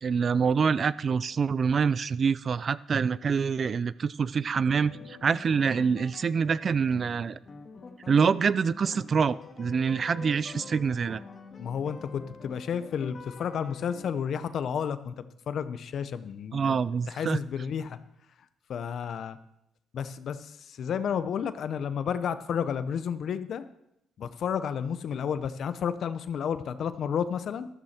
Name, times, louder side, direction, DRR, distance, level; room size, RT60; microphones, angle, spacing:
voice 1, 0.0-7.4 8.1-11.2 16.5-17.4, right 6 dB, 45° right, 18 dB, 0.4 m, -26 dB
sound 1, 4.7-14.1, left 4 dB, 40° left, 1.8 m, -46 dB
voice 2, 11.6-15.1 15.5-16.7 17.1-18.0 18.7-19.4 19.9-23.6 24.2-27.7, left 7 dB, 65° left, 13 dB, 0.8 m, -31 dB
13.0 x 13.0 x 4.4 m, 0.82 s
cardioid pair, 90°, 0 cm